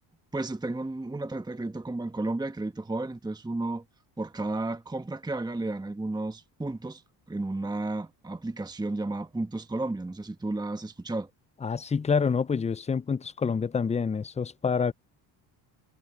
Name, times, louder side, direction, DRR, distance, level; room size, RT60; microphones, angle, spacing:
voice 1, 0.3-3.8 4.2-7.0 7.3-11.3, right 2 dB, 10° right, 1.2 m, -32 dB
voice 2, 11.6-14.9, left 5 dB, 15° left, 0.4 m, -27 dB
supercardioid pair, 75°, 49 cm